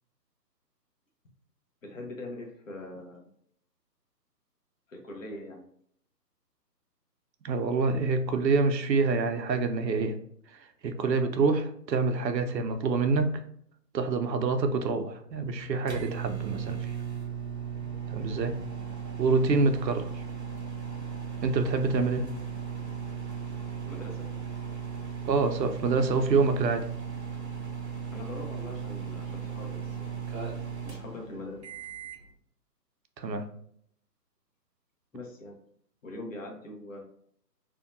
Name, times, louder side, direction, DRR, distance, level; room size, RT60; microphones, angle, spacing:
voice 1, 1.8-3.3 4.9-5.6 18.4-18.6 23.9-24.3 28.1-30.1 30.8-31.6 35.1-35.6 36.0-37.0, left 2 dB, 50° left, 1 dB, 0.8 m, -42 dB
voice 2, 7.4-10.2 10.5-13.4 13.9-17.0 18.1-18.6 19.2-20.2 21.4-22.3 25.2-26.9 33.2-33.4, right 4 dB, 90° right, 7 dB, 0.6 m, -26 dB
sound 1, 15.3-32.3, right 7 dB, 45° right, 0.5 m, -37 dB
2.7 x 2.2 x 2.5 m, 0.65 s
figure-of-eight pair, 150°, 50 cm